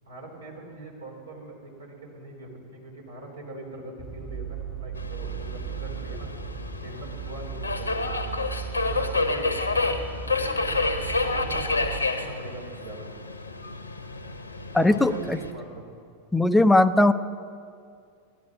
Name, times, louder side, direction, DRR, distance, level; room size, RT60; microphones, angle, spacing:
voice 1, 0.0-6.3 6.7-8.2 8.8-9.9 10.2-13.1 14.8-16.0, right 2 dB, 75° right, -1 dB, 3.9 m, -42 dB
sound 1, 4.0-12.0, right 7 dB, 30° right, 1.7 m, -36 dB
Subway metro underground, 5.0-15.5, left 3 dB, 80° left, 1.1 m, -29 dB
voice 2, 14.7-15.4 16.3-17.1, left 2 dB, 5° left, 11 dB, 0.6 m, -19 dB
17.0 x 12.0 x 6.1 m, 2.3 s
figure-of-eight pair, 90°, 0 cm